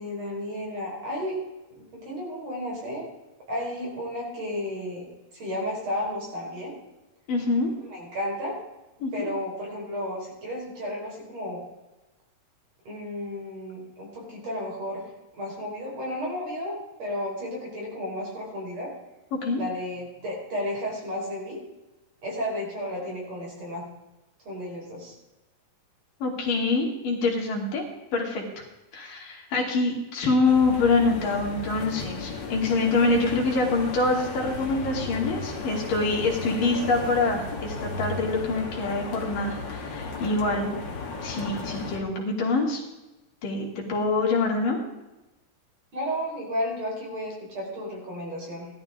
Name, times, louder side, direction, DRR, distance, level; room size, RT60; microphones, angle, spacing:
voice 1, 0.0-1.4 1.8-3.1 3.5-5.1 5.3-6.8 7.9-8.6 9.1-11.6 12.9-15.1 15.4-18.9 19.6-21.6 22.2-23.8 24.5-25.1 45.9-48.7, left 1 dB, 45° right, -2 dB, 5.7 m, -33 dB
voice 2, 7.3-7.7 9.0-9.1 19.3-19.6 26.2-27.8 28.1-28.5 28.9-40.7 41.2-42.8 43.4-44.8, left 3 dB, 65° left, -1 dB, 4.1 m, -25 dB
sound 1, 30.4-42.0, left 3 dB, 40° left, 2.0 m, -35 dB
18.5 x 12.0 x 3.7 m, 1.0 s
omnidirectional pair, 4.1 m